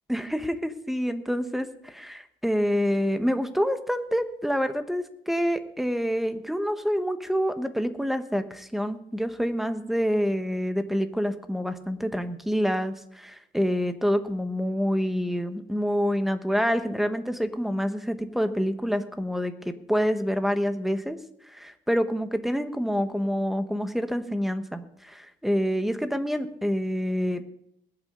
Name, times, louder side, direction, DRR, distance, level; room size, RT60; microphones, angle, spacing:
voice 1, 0.1-21.2 21.5-27.4, equal, ahead, 9 dB, 1.3 m, -27 dB
20.5 x 8.8 x 3.9 m, 0.74 s
cardioid pair, 90°, 20 cm